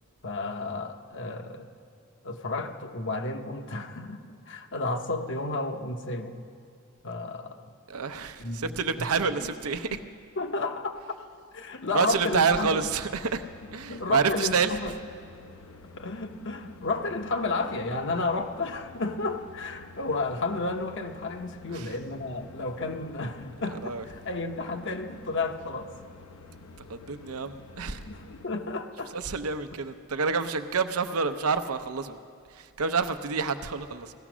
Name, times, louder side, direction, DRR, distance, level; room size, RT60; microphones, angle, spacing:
voice 1, 0.2-1.7 2.2-6.4 7.0-7.7 8.4-8.7 9.0-9.1 9.4-9.5 9.9-10.0 10.4-11.0 11.5-12.8 13.9-14.9 16.0-25.9 28.1-29.2, left 3 dB, 55° left, 6 dB, 1.0 m, -32 dB
voice 2, 7.9-10.0 11.9-13.5 13.7-14.7 21.7-21.9 23.8-24.0 26.9-28.0 29.1-32.2 32.5-34.1, right 5 dB, 80° right, 9 dB, 0.7 m, -28 dB
sound 1, 12.3-28.5, left 3 dB, 85° left, 1.0 m, -49 dB
17.0 x 13.5 x 6.1 m, 2.4 s
head